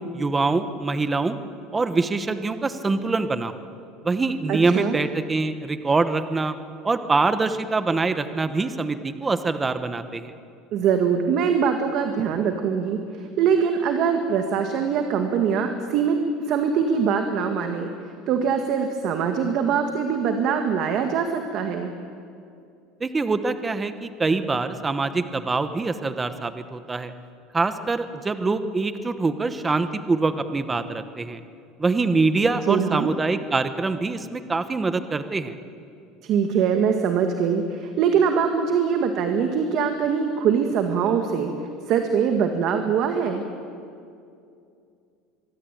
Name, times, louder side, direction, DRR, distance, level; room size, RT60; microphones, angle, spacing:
voice 1, 0.0-1.4 1.7-3.5 4.0-6.5 6.8-10.3 23.0-27.1 27.5-31.4 31.8-35.5, right 3 dB, 10° right, 10 dB, 1.0 m, -24 dB
voice 2, 4.5-5.0 10.7-17.9 18.3-21.9 32.7-33.1 36.2-41.5 41.9-43.4, right 6 dB, 45° right, 5 dB, 1.9 m, -23 dB
25.0 x 23.0 x 9.2 m, 2.5 s
cardioid pair, 170°, 0 cm